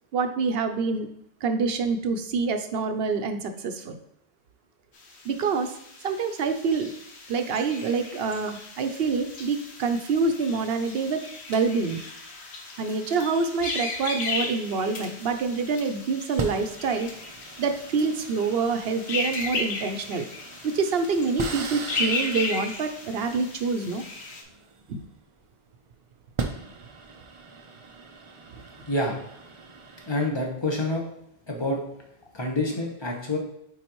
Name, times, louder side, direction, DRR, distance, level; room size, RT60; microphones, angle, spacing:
voice 1, 0.1-1.1 1.4-4.0 5.2-5.8 6.0-6.9 7.3-11.2 11.5-12.0 12.8-17.1 17.6-20.3 20.6-24.0 24.9-25.0, right 4 dB, 70° right, 7 dB, 0.9 m, -26 dB
sound 1, 4.9-24.4, left 3 dB, 85° left, 1.2 m, -36 dB
sound 2, 15.2-15.4 16.4-25.4 26.1-30.3, right 4 dB, 40° right, 0.5 m, -39 dB
voice 2, 30.1-31.0 31.5-31.8 32.3-33.4, left 2 dB, 25° left, 0 dB, 1.1 m, -27 dB
8.5 x 3.8 x 3.0 m, 0.75 s
omnidirectional pair, 1.1 m